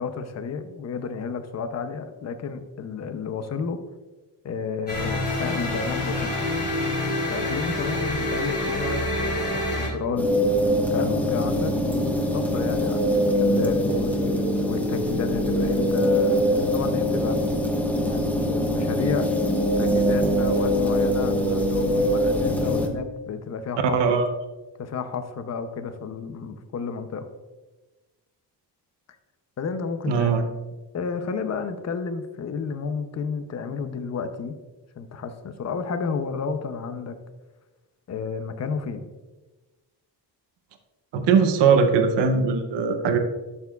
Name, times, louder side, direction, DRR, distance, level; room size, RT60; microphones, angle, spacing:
voice 1, 0.0-3.8 4.4-6.3 7.3-10.4 10.9-14.1 14.7-17.4 17.9-19.3 19.8-24.0 24.8-27.3 29.6-30.5 30.9-34.6 35.0-37.2 38.1-39.0, left 5 dB, 40° left, 9 dB, 0.7 m, -31 dB
sound 1, 4.9-9.9, left 1 dB, 25° left, 2.7 m, -27 dB
sound 2, 10.2-22.9, equal, 5° left, 0.7 m, -23 dB
voice 2, 23.9-24.3 30.1-30.5 41.1-43.2, right 5 dB, 85° right, 7 dB, 0.9 m, -20 dB
12.0 x 6.8 x 2.4 m, 1.2 s
wide cardioid pair, 160°, 41 cm